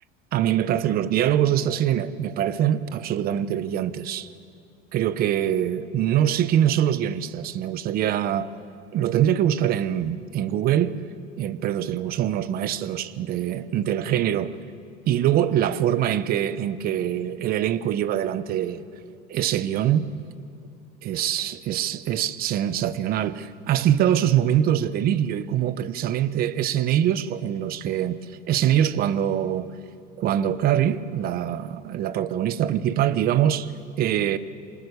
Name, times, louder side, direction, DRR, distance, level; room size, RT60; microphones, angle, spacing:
voice 1, 0.3-4.3 4.9-8.5 8.9-10.9 11.4-14.5 15.1-18.8 19.3-20.1 21.0-28.2 28.5-29.7 30.2-33.7 34.0-34.4, right 10 dB, 45° right, 1.0 m, -23 dB
28.0 x 20.5 x 6.7 m
supercardioid pair, 120°, 21 cm